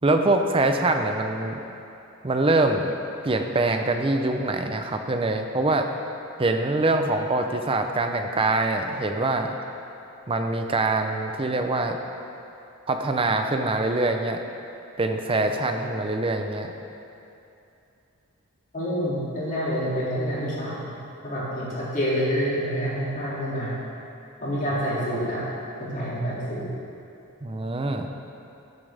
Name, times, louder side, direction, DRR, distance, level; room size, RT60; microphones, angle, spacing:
voice 1, 0.0-1.6 2.2-2.9 3.2-5.9 6.4-9.5 10.3-12.0 12.9-14.4 15.0-16.7 27.4-28.1, right 2 dB, 25° right, 5 dB, 0.5 m, -24 dB
voice 2, 18.7-23.8 24.4-25.4 25.8-26.7, equal, 35° left, -7 dB, 2.4 m, -27 dB
14.0 x 7.2 x 3.4 m, 2.8 s
head